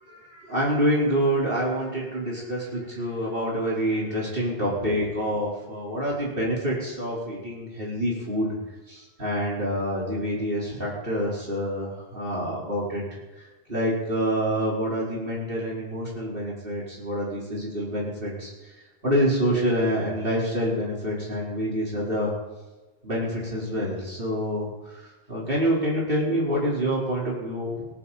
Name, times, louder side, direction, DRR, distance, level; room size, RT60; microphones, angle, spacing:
voice 1, 0.1-8.5 8.9-13.0 13.3-13.4 13.7-18.7 19.0-22.3 23.0-27.9, equal, 55° right, -5 dB, 4.7 m, -27 dB
19.0 x 14.0 x 4.3 m, 1.2 s
omnidirectional pair, 1.1 m